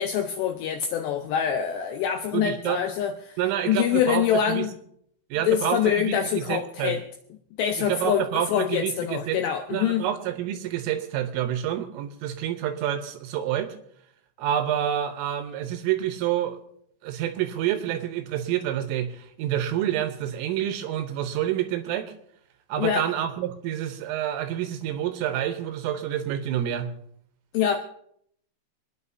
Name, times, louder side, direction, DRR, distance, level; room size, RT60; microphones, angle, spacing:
voice 1, 0.0-3.4 3.7-4.7 5.5-7.0 7.6-10.1 22.8-23.1 27.5-27.8, left 9 dB, 90° left, 4 dB, 2.4 m, -25 dB
voice 2, 2.3-2.8 3.4-4.7 5.3-7.0 7.8-9.4 9.7-13.7 14.4-16.6 17.0-22.1 22.7-26.9, right 11 dB, 80° right, 8 dB, 3.5 m, -28 dB
27.0 x 10.0 x 2.8 m, 0.68 s
omnidirectional pair, 5.8 m